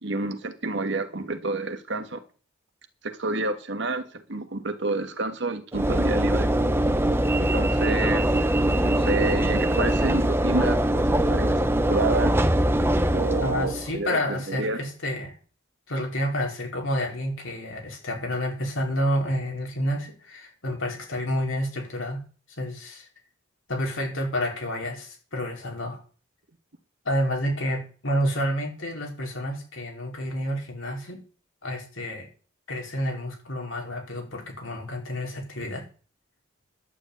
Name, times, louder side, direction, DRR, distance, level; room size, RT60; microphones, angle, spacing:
voice 1, 0.0-2.2 3.0-6.5 7.4-8.3 8.8-12.4 13.1-14.8, right 2 dB, 65° right, 1.7 m, -29 dB
Train / Engine / Alarm, 5.7-14.0, right 1 dB, 10° right, 0.8 m, -22 dB
voice 2, 13.4-15.4 15.9-22.2 22.5-23.1 23.7-26.0 27.0-31.2 31.6-32.3 32.7-35.8, equal, 80° left, 4.9 m, -29 dB
11.0 x 8.1 x 8.6 m
head